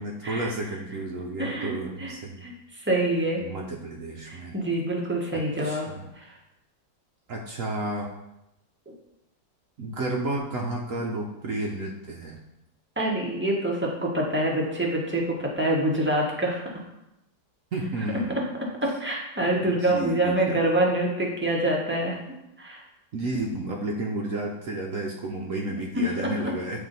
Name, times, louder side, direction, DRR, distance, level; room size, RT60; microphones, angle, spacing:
voice 1, 0.0-2.4 3.4-4.6 5.3-6.1 7.3-8.1 9.8-12.4 17.7-18.4 19.6-20.6 23.1-26.8, right 2 dB, 60° right, -1 dB, 0.9 m, -32 dB
voice 2, 1.4-1.7 2.0-2.1 2.4-3.4 4.3-5.9 6.2-6.4 13.0-16.8 18.8-22.2 22.6-22.8 26.0-26.1, right 1 dB, 10° right, -2 dB, 0.7 m, -26 dB
8.7 x 3.6 x 4.0 m, 0.90 s
omnidirectional pair, 1.9 m